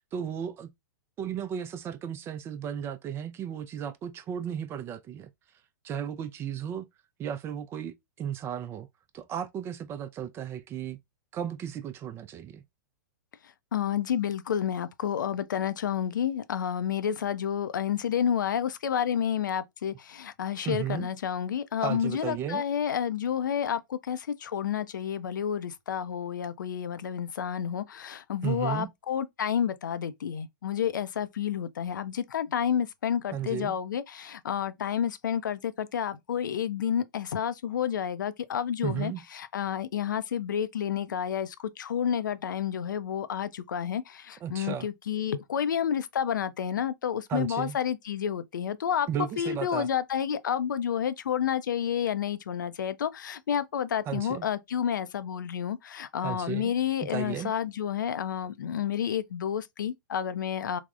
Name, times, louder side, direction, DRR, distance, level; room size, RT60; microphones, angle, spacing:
voice 1, 0.1-0.7 1.2-5.3 5.8-6.8 7.2-8.9 9.1-11.0 11.3-12.6 20.6-21.1 21.8-22.6 28.4-28.9 33.3-33.7 38.8-39.2 44.4-44.9 47.3-47.8 49.1-49.9 54.1-54.5 56.2-56.7 57.1-57.5, right 9 dB, 25° right, 0.3 m, -34 dB
voice 2, 13.7-49.1 49.4-60.8, left 9 dB, 75° left, 0.4 m, -30 dB
3.4 x 2.0 x 2.3 m
hypercardioid pair, 110°, 10 cm